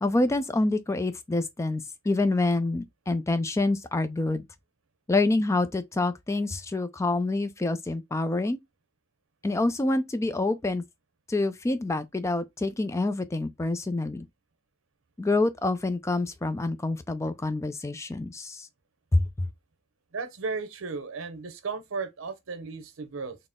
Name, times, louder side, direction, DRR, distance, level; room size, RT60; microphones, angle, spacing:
voice 1, 0.0-4.4 5.1-8.6 9.4-10.8 11.3-14.3 15.2-18.7 19.1-19.5, left 2 dB, 15° left, 0.3 m, -27 dB
voice 2, 20.1-23.4, right 4 dB, 85° right, 0.7 m, -35 dB
4.0 x 2.0 x 3.5 m
head